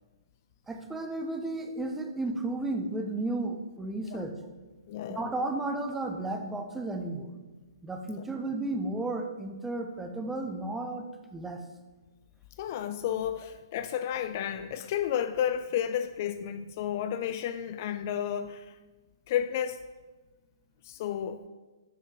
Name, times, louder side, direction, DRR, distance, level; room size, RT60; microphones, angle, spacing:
voice 1, 0.7-4.4 5.1-7.3 7.8-11.0 11.3-11.6, right 2 dB, 10° right, 4 dB, 0.7 m, -33 dB
voice 2, 4.9-5.3 8.1-8.3 12.6-18.8 19.3-19.8 20.8-21.4, left 9 dB, 40° left, 11 dB, 0.3 m, -32 dB
8.4 x 5.6 x 4.7 m, 1.2 s
figure-of-eight pair, 125°, 2 cm